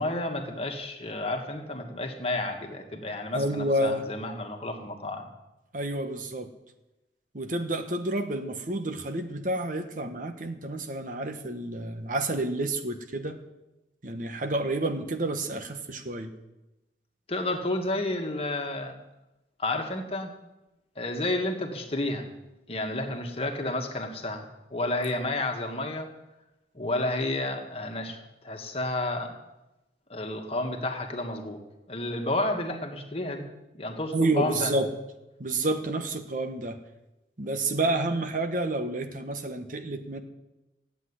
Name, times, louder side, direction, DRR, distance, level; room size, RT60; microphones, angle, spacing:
voice 1, 0.0-5.3 17.3-19.0 19.6-20.3 21.0-22.3 22.7-26.1 26.7-29.4 30.1-31.6 31.9-33.5 33.7-34.7, left 2 dB, 35° left, 3 dB, 1.9 m, -31 dB
voice 2, 3.3-4.0 5.7-6.5 7.3-13.4 14.0-16.4 34.1-34.9 35.4-36.8 37.4-40.2, right 2 dB, 50° right, 7 dB, 1.3 m, -29 dB
14.5 x 8.5 x 10.0 m, 0.99 s
head